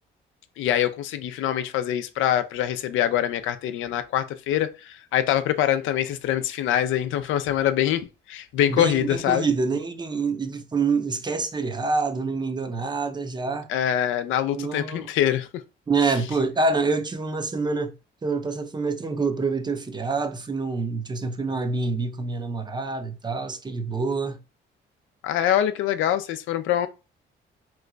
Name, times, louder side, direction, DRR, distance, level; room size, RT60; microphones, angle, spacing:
voice 1, 0.6-9.5 13.7-15.6 25.2-26.9, left 11 dB, 85° left, 0.4 m, -24 dB
voice 2, 8.7-13.7 14.5-15.1 15.9-17.9 18.2-24.4, right 4 dB, 20° right, 0.5 m, -26 dB
3.0 x 2.2 x 3.7 m
cardioid pair, 90°, 20 cm